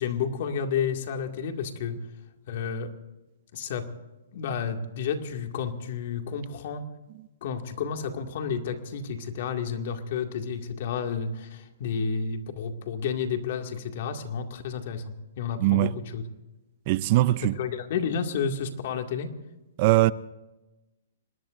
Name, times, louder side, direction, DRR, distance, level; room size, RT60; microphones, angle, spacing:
voice 1, 0.0-2.0 2.5-2.9 3.5-3.9 4.3-6.9 7.4-16.2 17.4-19.3, left 6 dB, 55° left, 2.2 m, -31 dB
voice 2, 15.6-15.9 16.9-17.6 19.8-20.1, right 17 dB, 40° right, 0.5 m, -21 dB
26.5 x 20.0 x 2.6 m
hypercardioid pair, 150°, 0 cm